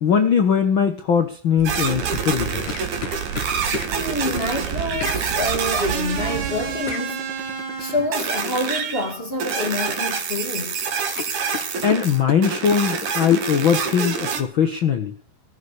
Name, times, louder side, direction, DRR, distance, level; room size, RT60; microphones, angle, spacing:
voice 1, 0.0-2.6 11.8-15.1, left 7 dB, 85° left, 1.1 m, -20 dB
sound 1, 1.6-7.0, right 13 dB, 85° right, 1.5 m, -32 dB
sound 2, 1.7-14.4, right 5 dB, 60° right, 3.3 m, -27 dB
sound 3, 2.2-3.9 5.0-5.2 6.9-7.1 9.1-9.4 9.7-10.4 10.7-10.8 11.2-12.9 13.3-13.5, left 10 dB, 65° left, 2.3 m, -33 dB
voice 2, 3.8-10.8, left 1 dB, 25° left, 1.4 m, -27 dB
19.0 x 7.5 x 8.2 m
omnidirectional pair, 4.1 m